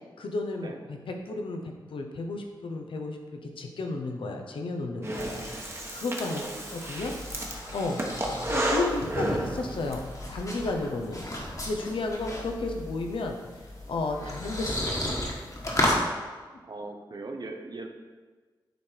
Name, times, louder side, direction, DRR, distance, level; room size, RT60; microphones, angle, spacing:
voice 1, 0.2-5.4 5.7-6.4 6.7-7.1 7.7-8.0 8.5-10.0 10.3-11.2 11.7-13.4 13.9-15.3, left 3 dB, 85° left, 3 dB, 0.8 m, -33 dB
Breathing, 5.0-10.0, right 1 dB, 30° right, 1.3 m, -32 dB
voice 2, 6.2-6.8 8.0-8.2 14.2-14.3 16.6-17.9, right 3 dB, 55° right, 4 dB, 0.8 m, -40 dB
sound 1, 6.5-16.0, left 1 dB, 40° left, 1.5 m, -34 dB
9.1 x 3.3 x 4.5 m, 1.4 s
cardioid pair, 55°, 9 cm